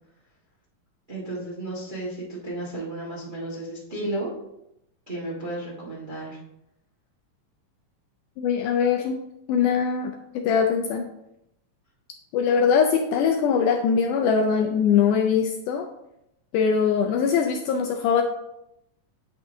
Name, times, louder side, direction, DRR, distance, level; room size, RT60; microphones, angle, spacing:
voice 1, 1.1-4.3 5.1-6.4, right 1 dB, 90° right, -6 dB, 0.4 m, -33 dB
voice 2, 8.4-9.2 9.5-11.1 12.3-15.9 16.5-18.2, left 6 dB, 85° left, 3 dB, 1.8 m, -22 dB
8.9 x 3.7 x 3.5 m, 0.82 s
omnidirectional pair, 4.1 m